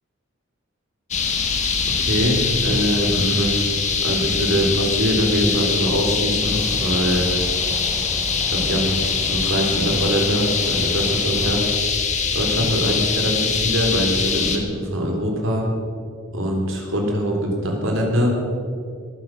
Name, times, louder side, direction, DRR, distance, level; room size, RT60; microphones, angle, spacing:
sound 1, 1.1-14.6, left 5 dB, 35° left, 1.6 m, -23 dB
voice 1, 2.0-3.6 4.0-7.3 8.5-11.6 12.3-15.7 16.3-18.4, equal, 70° right, 0 dB, 3.5 m, -23 dB
sound 2, 6.4-11.8, equal, 10° right, 0.6 m, -36 dB
20.5 x 10.0 x 6.3 m, 2.3 s
head